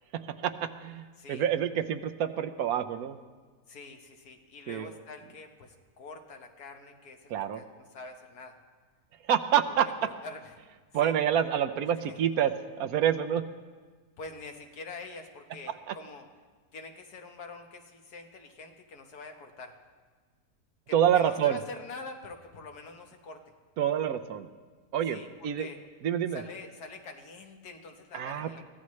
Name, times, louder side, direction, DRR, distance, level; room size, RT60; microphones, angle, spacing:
voice 1, 0.1-3.2 4.7-4.9 7.3-7.6 9.2-9.9 10.9-13.4 15.9-16.0 20.9-21.6 23.8-24.5 24.9-25.7 26.0-26.4 28.1-28.6, right 9 dB, 75° right, 9 dB, 1.1 m, -27 dB
voice 2, 1.2-1.5 3.7-8.6 9.7-10.5 11.0-11.2 12.1-12.2 14.2-16.3 16.7-19.8 20.9-23.5 25.1-25.8 26.3-28.6, left 3 dB, 85° left, 4 dB, 1.8 m, -45 dB
23.5 x 15.5 x 3.2 m, 1.4 s
omnidirectional pair, 1.6 m